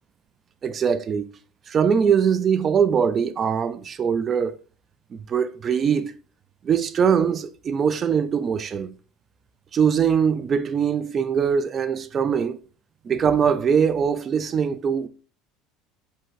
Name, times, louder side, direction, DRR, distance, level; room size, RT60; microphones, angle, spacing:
voice 1, 0.6-1.3 1.7-4.6 5.1-6.1 6.6-8.9 9.7-12.6 13.0-15.1, right 7 dB, 30° right, 0.3 m, -22 dB
5.2 x 2.1 x 3.9 m
cardioid pair, 150°, 0 cm